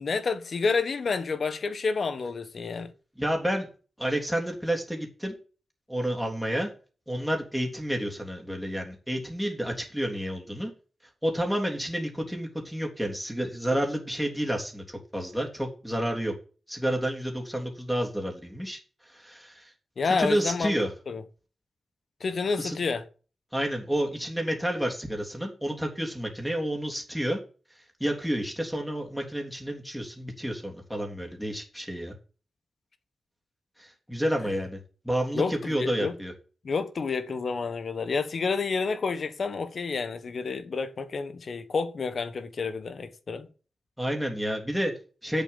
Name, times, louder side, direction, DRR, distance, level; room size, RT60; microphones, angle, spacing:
voice 1, 0.0-2.9 20.0-20.7 21.1-21.2 22.2-23.0 35.3-36.2 36.6-43.5, left 4 dB, 65° left, 1.3 m, -29 dB
voice 2, 3.2-3.7 4.0-5.4 5.9-6.7 7.1-10.7 11.2-16.3 16.7-18.8 19.1-19.7 20.0-20.9 22.6-22.8 23.5-27.4 28.0-32.1 33.8-36.3 44.0-45.4, equal, ahead, 3.3 m, -30 dB
8.2 x 7.2 x 7.2 m
cardioid pair, 75°, 0 cm